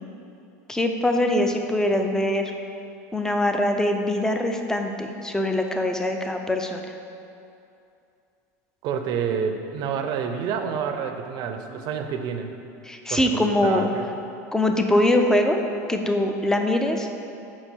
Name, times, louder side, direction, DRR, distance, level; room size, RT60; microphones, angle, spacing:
voice 1, 0.7-2.4 3.1-6.8 12.9-13.9 14.5-15.6 15.9-17.1, left 1 dB, 5° left, 4 dB, 0.5 m, -23 dB
voice 2, 8.8-12.6 13.1-14.1, right 7 dB, 50° right, 6 dB, 0.6 m, -28 dB
5.4 x 4.5 x 4.5 m, 2.7 s
hypercardioid pair, 100°, 9 cm